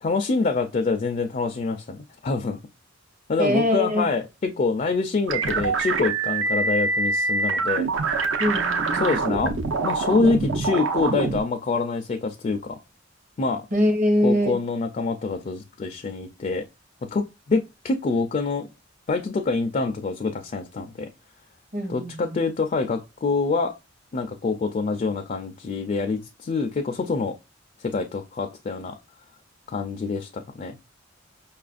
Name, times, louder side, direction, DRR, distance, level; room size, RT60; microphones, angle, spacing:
voice 1, 0.0-2.6 3.3-7.9 9.0-12.8 13.4-13.6 14.2-16.6 17.0-18.7 19.1-21.1 21.9-23.7 24.1-27.3 27.8-29.0 29.7-30.8, left 4 dB, 40° left, 0.4 m, -26 dB
voice 2, 3.4-4.1 8.4-9.1 13.7-14.6 21.7-22.4, left 1 dB, 40° right, 0.9 m, -23 dB
sound 1, 5.3-11.4, right 3 dB, 70° right, 0.6 m, -25 dB
5.4 x 2.4 x 2.4 m
head